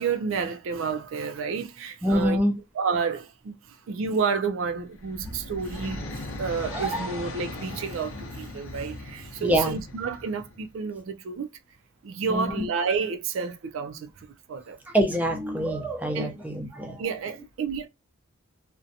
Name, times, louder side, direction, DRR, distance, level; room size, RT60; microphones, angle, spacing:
voice 1, 0.0-2.4 2.8-3.6 3.9-11.5 12.0-14.1 14.5-14.8 16.1-16.3 17.0-17.9, right 5 dB, 70° right, 0.4 m, -30 dB
voice 2, 2.0-2.6 5.3-5.4 5.7-5.9 6.7-7.2 9.4-9.8 12.3-12.7 14.9-17.1, equal, 10° right, 0.4 m, -26 dB
sound 1, 4.7-10.8, left 2 dB, 75° left, 0.6 m, -38 dB
2.5 x 2.1 x 2.7 m
head